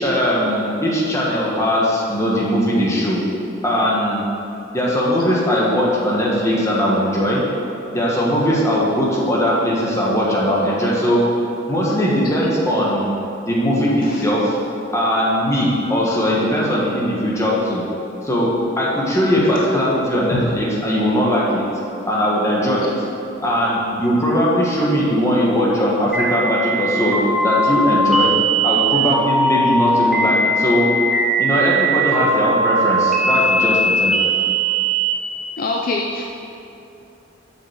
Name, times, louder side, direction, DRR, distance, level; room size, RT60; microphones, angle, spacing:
voice 1, 0.0-3.2 3.6-4.3 4.7-7.4 7.9-11.2 11.7-13.1 13.4-14.6 14.9-17.8 18.2-21.7 22.1-22.9 23.4-28.3 28.6-30.9 31.4-34.1, equal, 15° left, -5 dB, 1.7 m, -19 dB
sound 1, 26.1-35.1, right 2 dB, ahead, 1.2 m, -19 dB
voice 2, 35.6-36.2, left 2 dB, 50° left, 0 dB, 0.6 m, -25 dB
7.9 x 6.0 x 6.6 m, 2.7 s
head